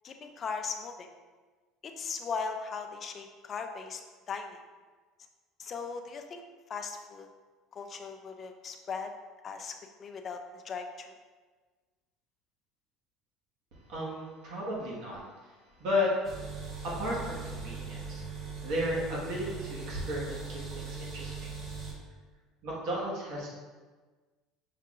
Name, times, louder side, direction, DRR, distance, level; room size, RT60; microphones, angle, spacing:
voice 1, 0.0-1.1 1.8-4.0 4.3-4.6 5.6-6.4 6.7-7.3 7.7-9.1 9.4-9.7 10.0-11.1, left 5 dB, 35° left, 5 dB, 0.4 m, -38 dB
voice 2, 13.9-15.5 15.8-16.1 16.8-18.2 18.6-21.5 22.6-23.5, left 1 dB, 65° right, -4 dB, 1.5 m, -34 dB
sound 1, 16.2-21.9, right 4 dB, 45° right, 1.2 m, -40 dB
5.7 x 3.7 x 2.5 m, 1.4 s
cardioid pair, 135°, 0 cm